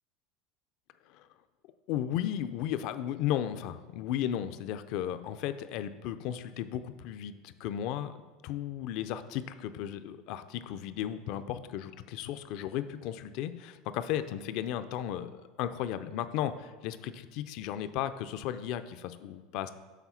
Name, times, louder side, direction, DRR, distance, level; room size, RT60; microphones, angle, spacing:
voice 1, 1.9-8.1 8.4-19.7, left 11 dB, 60° left, 11 dB, 0.4 m, -35 dB
7.1 x 3.6 x 5.6 m, 1.4 s
supercardioid pair, 110°, 0 cm